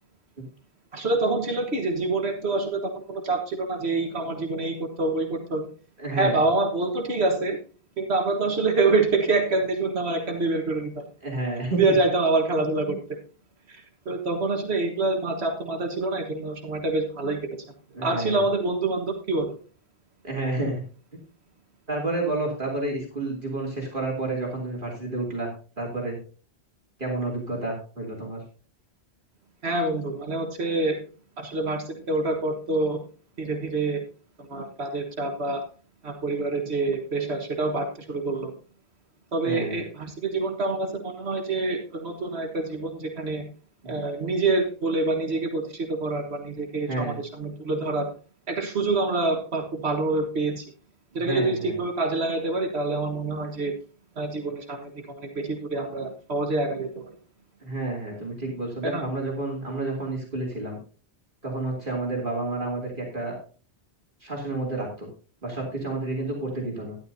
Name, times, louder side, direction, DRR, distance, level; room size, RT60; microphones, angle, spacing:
voice 1, 0.9-5.7 6.2-7.6 8.0-11.0 11.8-13.0 13.7-17.4 18.0-19.5 29.6-31.0 31.4-33.0 33.4-34.0 34.4-35.6 36.0-38.5 39.3-43.5 43.8-48.1 48.5-50.6 51.1-53.7 54.2-57.1 58.8-59.0, right 3 dB, 75° right, 4 dB, 1.7 m, -26 dB
voice 2, 6.0-6.4 11.2-11.9 17.9-18.4 20.2-20.8 21.9-25.5 25.8-26.2 27.0-28.4 39.4-39.8 43.8-43.9 46.9-47.2 51.1-51.8 57.6-60.8 61.4-63.3 64.2-65.1 65.4-67.0, right 2 dB, 50° right, -2 dB, 3.0 m, -30 dB
12.0 x 11.5 x 2.7 m, 0.38 s
omnidirectional pair, 1.1 m